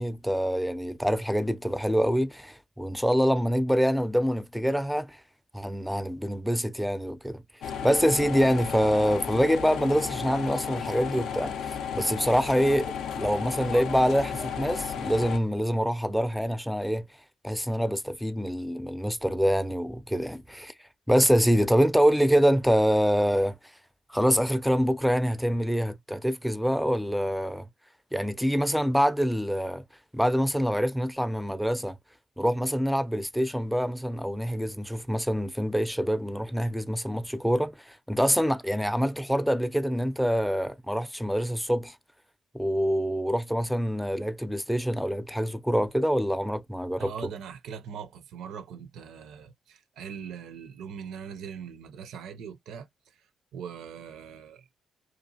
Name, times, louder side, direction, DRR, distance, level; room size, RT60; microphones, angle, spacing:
voice 1, 0.0-5.2 5.5-7.4 7.8-17.1 17.4-20.7 21.1-23.7 24.1-27.7 28.1-29.8 30.1-32.0 32.4-42.0 42.5-47.3, equal, ahead, 0.4 m, -25 dB
sound 1, 7.6-15.4, left 7 dB, 75° left, 0.4 m, -33 dB
voice 2, 47.0-52.9 53.5-54.6, right 7 dB, 80° right, 0.5 m, -41 dB
2.8 x 2.4 x 2.7 m
supercardioid pair, 50°, 0 cm